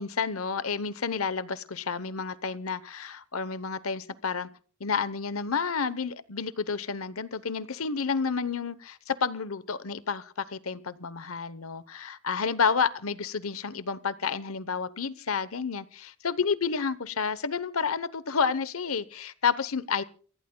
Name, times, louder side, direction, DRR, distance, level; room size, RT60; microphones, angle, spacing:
voice 1, 0.0-4.5 4.8-20.0, left 5 dB, 85° left, 1.0 m, -30 dB
29.0 x 15.5 x 2.3 m
head